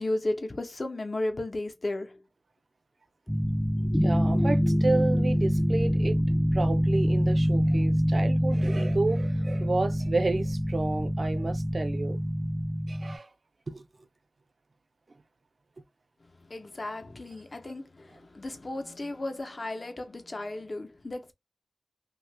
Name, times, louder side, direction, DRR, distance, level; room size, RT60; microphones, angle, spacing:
voice 1, 0.0-2.2 16.2-21.3, left 2 dB, 70° left, 0.7 m, -34 dB
sound 1, 3.3-13.2, equal, 5° left, 0.5 m, -25 dB
voice 2, 4.0-6.2 6.5-12.2 12.9-13.3 13.7-13.9, right 3 dB, 80° right, 0.5 m, -31 dB
2.7 x 2.4 x 3.2 m
wide cardioid pair, 50°, 0 cm